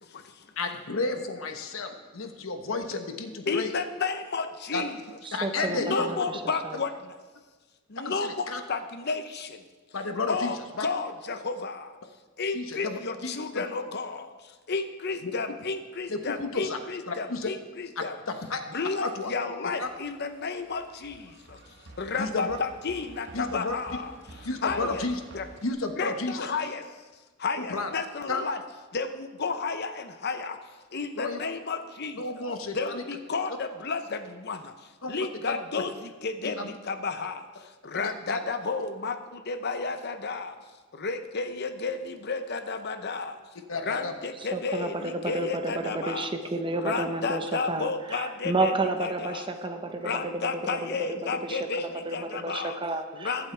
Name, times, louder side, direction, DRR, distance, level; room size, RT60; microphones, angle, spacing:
voice 1, 0.0-0.4 3.5-5.0 5.7-7.2 7.9-9.7 10.3-12.0 12.4-18.2 18.7-24.2 24.6-25.0 25.3-25.5 26.0-26.9 27.4-28.6 28.9-30.6 30.9-32.2 32.7-34.7 35.1-40.6 40.9-43.4 43.7-46.3 46.7-48.7 49.0-49.5 50.0-52.8 53.1-53.5, left 4 dB, 55° left, 9 dB, 0.8 m, -32 dB
voice 2, 0.6-3.7 4.7-4.8 5.3-6.1 8.0-8.6 9.9-10.5 10.8-10.9 12.5-13.6 15.2-15.3 16.1-16.8 17.1-17.5 18.0-18.1 18.5-18.6 19.0-19.3 19.8-19.9 22.2-22.6 23.3-23.7 24.4-25.2 25.6-26.5 27.6-27.9 28.3-28.4 31.2-31.4 32.2-33.0 35.0-35.1 35.5-35.8 36.5-36.7 37.9-38.4 43.7-44.1, left 3 dB, 75° left, 6 dB, 1.1 m, -32 dB
voice 3, 5.2-6.8 44.5-51.6 52.1-53.5, right 2 dB, 25° right, 6 dB, 0.9 m, -31 dB
sound 1, 19.8-25.7, right 2 dB, 60° right, 1.3 m, -50 dB
23.0 x 8.0 x 3.4 m, 1.3 s
head